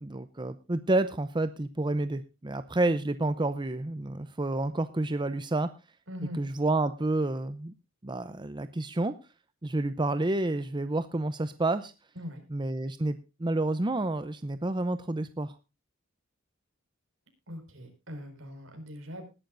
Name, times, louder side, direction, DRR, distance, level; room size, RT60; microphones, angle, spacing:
voice 1, 0.0-5.7 6.4-7.7 8.0-9.1 9.6-11.9 12.5-15.6, right 2 dB, 20° right, 11 dB, 0.6 m, -29 dB
voice 2, 6.1-6.4 12.2-12.4 17.5-19.3, equal, 65° right, 5 dB, 5.2 m, -41 dB
20.0 x 11.5 x 2.6 m, 0.29 s
head